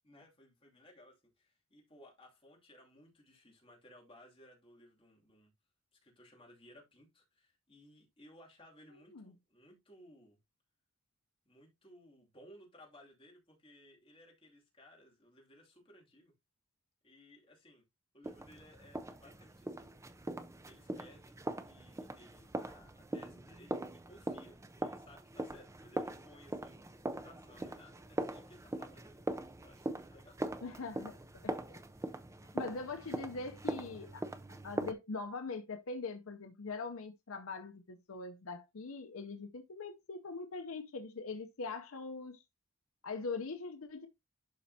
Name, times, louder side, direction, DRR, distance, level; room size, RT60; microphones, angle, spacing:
voice 1, 0.0-5.5 5.9-10.4 11.5-16.3 17.0-17.8 18.1-20.0 20.6-29.2 29.6-30.4 31.9-32.2 32.5-32.6, left 1 dB, 25° left, 2.6 m, -60 dB
voice 2, 8.9-9.3 30.6-31.8 32.5-42.4 43.0-44.1, left 4 dB, 70° left, 0.7 m, -42 dB
sound 1, 18.2-34.9, right 1 dB, 15° right, 0.5 m, -42 dB
11.5 x 4.3 x 2.8 m
head